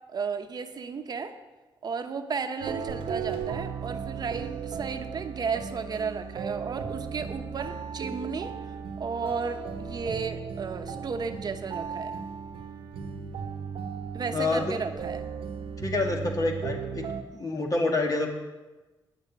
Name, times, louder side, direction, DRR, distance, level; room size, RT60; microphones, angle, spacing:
voice 1, 0.1-1.3 1.8-8.5 9.0-12.2 14.1-15.2, right 5 dB, 50° right, 7 dB, 0.9 m, -33 dB
sound 1, 2.6-17.2, right 6 dB, 85° right, 1.0 m, -36 dB
voice 2, 14.3-14.8 15.8-17.1 17.3-18.3, left 2 dB, 45° left, 2 dB, 2.3 m, -27 dB
9.8 x 7.4 x 8.7 m, 1.2 s
cardioid pair, 95°, 9 cm